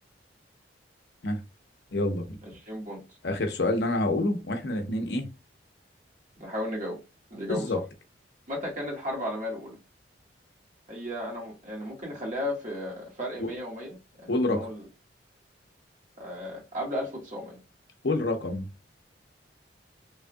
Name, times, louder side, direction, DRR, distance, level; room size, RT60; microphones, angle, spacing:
voice 1, 1.9-2.4 3.2-5.3 7.5-7.8 13.4-13.5 14.3-14.7 18.0-18.7, left 2 dB, 65° left, 0.8 m, -27 dB
voice 2, 2.4-3.0 6.4-7.0 7.3-7.8 8.5-9.8 10.9-14.8 16.2-17.6, left 1 dB, 45° right, 1.6 m, -35 dB
3.3 x 2.7 x 2.3 m
head